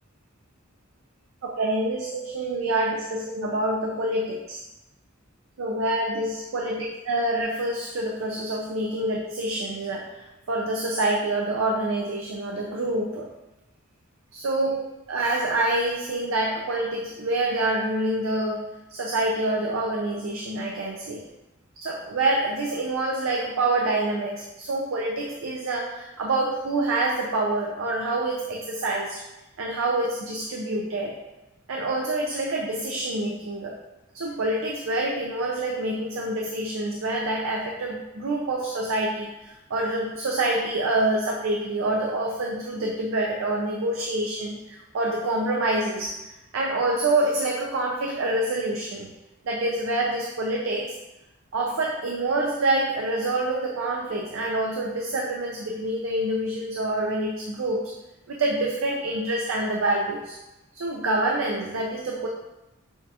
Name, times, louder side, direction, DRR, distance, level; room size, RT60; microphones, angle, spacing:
voice 1, 1.4-4.6 5.6-13.3 14.3-21.3 21.8-29.2 29.6-31.2 31.7-33.8 34.1-46.2 46.5-49.1 49.4-51.0 51.5-57.9 58.3-60.4 60.7-62.3, right 2 dB, 65° right, -1 dB, 0.5 m, -26 dB
6.0 x 2.4 x 2.8 m, 0.99 s
head